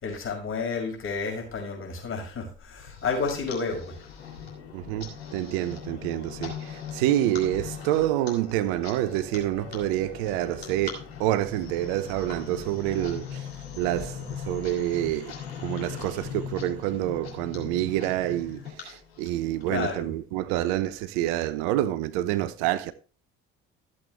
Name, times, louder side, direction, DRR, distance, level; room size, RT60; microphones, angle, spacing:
voice 1, 0.0-4.0 19.7-20.1, left 4 dB, 40° left, 5.7 m, -31 dB
sound 1, 2.8-19.6, left 7 dB, 85° left, 3.2 m, -40 dB
voice 2, 4.7-13.5 13.8-22.9, right 13 dB, 70° right, 0.8 m, -28 dB
13.5 x 7.9 x 3.3 m
hypercardioid pair, 60°, 30 cm